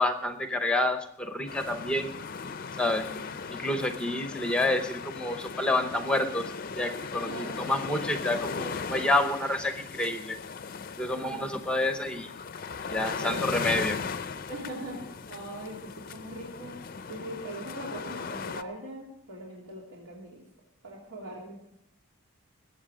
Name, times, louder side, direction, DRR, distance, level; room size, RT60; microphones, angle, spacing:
voice 1, 0.0-2.1 2.8-3.1 3.5-10.4 11.0-12.3 12.9-14.0, left 1 dB, 5° left, 7 dB, 0.7 m, -29 dB
sound 1, 1.5-18.6, left 5 dB, 40° left, 0.5 m, -37 dB
voice 2, 3.0-3.3 3.9-4.2 7.2-7.6 11.1-11.6 13.1-13.6 14.5-16.8 17.1-20.4 20.8-21.6, right 1 dB, 80° right, -3 dB, 3.1 m, -41 dB
21.0 x 8.0 x 5.0 m, 0.77 s
head